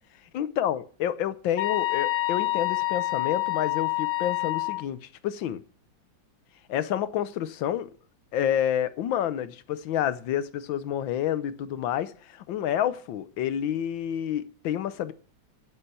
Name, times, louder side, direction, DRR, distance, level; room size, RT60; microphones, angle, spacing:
voice 1, 0.3-5.6 6.7-7.9 8.3-15.1, left 10 dB, 90° left, 1.6 m, -29 dB
sound 1, 1.6-4.8, left 19 dB, 65° left, 1.3 m, -27 dB
10.0 x 7.3 x 8.1 m
omnidirectional pair, 2.0 m